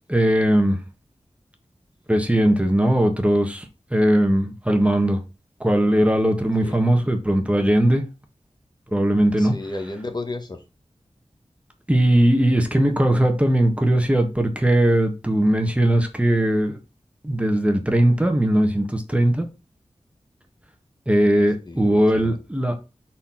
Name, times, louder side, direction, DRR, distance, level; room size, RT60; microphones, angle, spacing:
voice 1, 0.1-0.8 2.1-5.2 5.6-8.0 8.9-9.5 11.9-16.8 17.2-19.4 21.1-22.8, right 1 dB, 10° right, 1.5 m, -19 dB
voice 2, 9.4-10.6 21.7-22.4, left 2 dB, 40° left, 1.3 m, -33 dB
5.7 x 4.5 x 5.7 m
wide cardioid pair, 80°, 11 cm